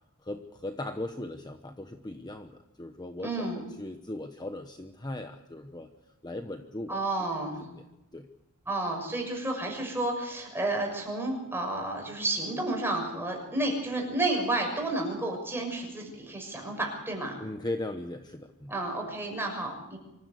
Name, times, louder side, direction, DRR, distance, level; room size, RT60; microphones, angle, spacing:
voice 1, 0.2-5.9 6.2-7.0 7.6-7.7 8.1-8.3 17.4-18.7, left 1 dB, 20° left, 7 dB, 1.0 m, -38 dB
voice 2, 3.2-3.6 6.9-7.6 8.7-17.4 18.7-20.0, right 2 dB, 10° right, 1 dB, 6.4 m, -31 dB
25.0 x 15.0 x 8.3 m, 0.91 s
head